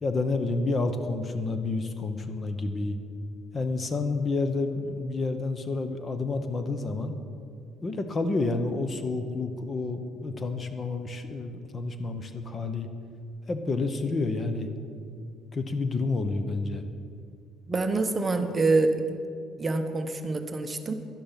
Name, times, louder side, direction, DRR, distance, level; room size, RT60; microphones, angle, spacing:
voice 1, 0.0-3.0 3.5-7.1 7.8-12.9 13.5-14.7 15.5-16.9, left 3 dB, 30° left, 8 dB, 1.0 m, -29 dB
voice 2, 17.7-19.0 19.6-20.9, right 3 dB, 25° right, 7 dB, 0.9 m, -26 dB
11.5 x 10.0 x 5.8 m, 2.4 s
cardioid pair, 105°, 0 cm